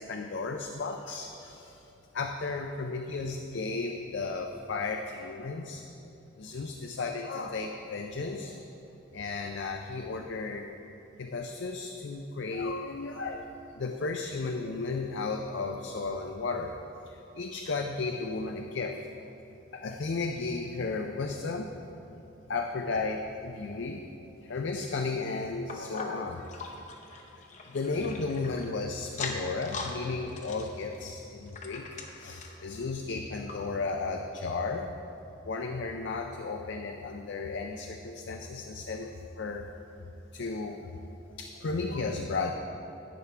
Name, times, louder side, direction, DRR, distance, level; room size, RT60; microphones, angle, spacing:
voice 1, 0.0-1.8 2.1-5.8 6.4-8.6 9.1-10.7 11.2-13.4 13.8-16.7 17.3-19.1 19.7-21.7 22.5-24.0 24.3-26.6 27.3-31.8 32.2-34.9 35.4-39.1 39.4-39.7 40.3-40.8 41.4-42.5, left 3 dB, 65° left, 3 dB, 0.5 m, -34 dB
sound 1, 25.7-28.7 29.1-30.0 30.3-32.6 33.1-33.2 33.5-33.6 34.2-34.3, left 4 dB, 35° left, 0.8 m, -41 dB
11.5 x 8.1 x 3.4 m, 2.9 s
head